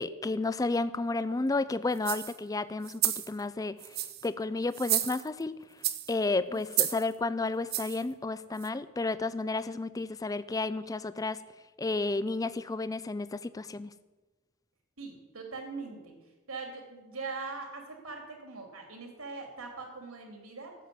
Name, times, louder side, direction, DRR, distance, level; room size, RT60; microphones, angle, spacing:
voice 1, 0.0-3.8 4.2-5.5 6.1-11.4 11.8-13.9, left 3 dB, 15° left, 15 dB, 0.3 m, -32 dB
sound 1, 2.0-2.4 2.8-3.3 3.8-4.3 4.7-5.4 5.8-6.1 6.7-7.0 7.7-8.0 8.6-8.7, right 13 dB, 45° right, 0.8 m, -31 dB
voice 2, 15.0-16.1 16.5-20.7, right 4 dB, 80° right, 3 dB, 3.2 m, -41 dB
13.0 x 7.5 x 9.4 m, 1.2 s
head